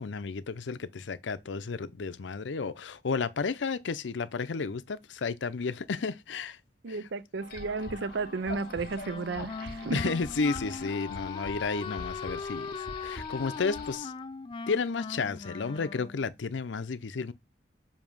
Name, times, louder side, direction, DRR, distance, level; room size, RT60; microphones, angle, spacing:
voice 1, 0.0-6.6 9.9-14.1 14.7-17.3, left 4 dB, 85° left, 0.6 m, -32 dB
voice 2, 6.8-10.1, right 4 dB, 80° right, 0.5 m, -33 dB
sound 1, 7.4-14.0, left 2 dB, 55° left, 1.6 m, -43 dB
Wind instrument woodwind instrument, 9.0-16.3, left 5 dB, 25° left, 0.4 m, -39 dB
7.1 x 2.8 x 5.4 m
head